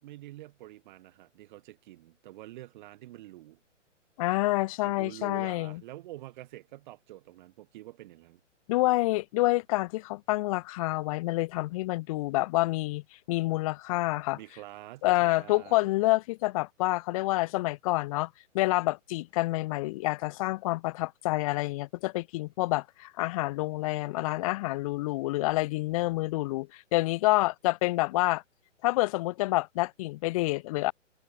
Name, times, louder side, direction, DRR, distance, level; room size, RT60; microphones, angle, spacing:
voice 1, 0.0-3.6 4.8-8.4 14.3-15.9, right 16 dB, 40° right, 3.6 m, -47 dB
voice 2, 4.2-5.8 8.7-13.0 13.3-14.4 15.0-18.3 18.5-28.4 28.8-30.9, left 20 dB, 30° left, 1.0 m, -28 dB
hypercardioid pair, 145°, 37 cm